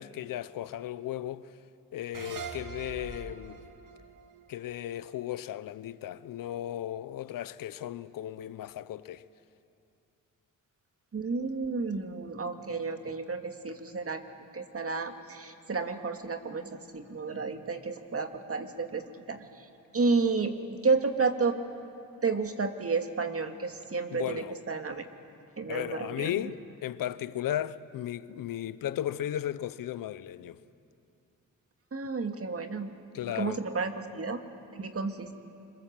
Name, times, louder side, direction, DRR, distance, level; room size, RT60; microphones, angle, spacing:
voice 1, 0.0-1.5 1.9-3.6 4.5-9.2 24.1-24.6 25.7-30.6 33.1-33.6, left 12 dB, 75° left, 0.7 m, -35 dB
sound 1, 2.1-5.5, right 5 dB, 70° right, 2.0 m, -43 dB
voice 2, 11.1-14.2 14.5-19.5 19.9-21.6 22.2-25.0 25.6-26.3 31.9-32.9 33.3-34.4 34.7-35.3, right 4 dB, 45° right, 2.2 m, -31 dB
25.5 x 23.0 x 7.5 m
cardioid pair, 60°, 33 cm